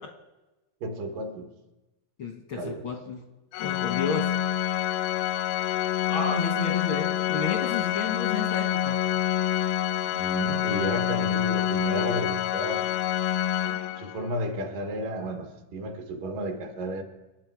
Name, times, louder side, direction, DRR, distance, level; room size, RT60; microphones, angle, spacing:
voice 1, 0.8-1.5 2.6-2.9 10.0-12.9 14.0-17.0, equal, 70° right, 3.1 m, -32 dB
voice 2, 2.2-3.2 3.6-4.3 6.1-9.0, left 5 dB, 70° left, 1.2 m, -31 dB
Organ, 3.5-14.3, left 11 dB, 85° left, 2.4 m, -27 dB
27.5 x 9.4 x 4.8 m
omnidirectional pair, 4.1 m